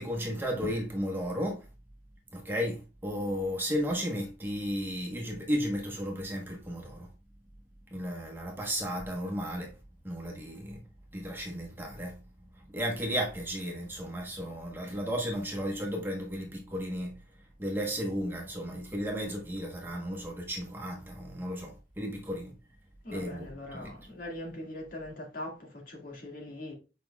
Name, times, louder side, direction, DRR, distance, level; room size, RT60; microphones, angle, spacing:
voice 1, 0.0-1.6 2.3-7.1 7.9-9.7 10.0-10.8 11.1-12.1 12.7-17.1 17.6-22.5 23.1-23.9, equal, 15° right, 1.2 m, -34 dB
voice 2, 23.0-26.7, left 1 dB, 50° left, 2.1 m, -41 dB
7.6 x 5.2 x 2.4 m
head